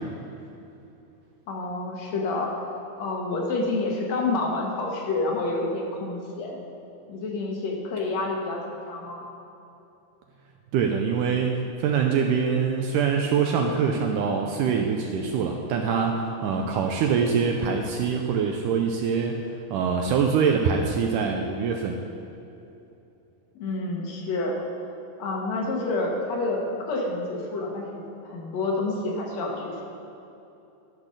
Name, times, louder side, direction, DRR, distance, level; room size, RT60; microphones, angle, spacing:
voice 1, 1.5-2.6 3.0-6.6 7.1-8.6 8.9-9.3 16.4-16.6 23.6-24.6 25.2-27.9 28.2-29.7, left 2 dB, 60° left, -1 dB, 2.1 m, -28 dB
voice 2, 10.7-19.4 19.7-22.0, right 6 dB, 85° right, 2 dB, 1.9 m, -24 dB
12.5 x 6.0 x 6.5 m, 2.9 s
omnidirectional pair, 4.3 m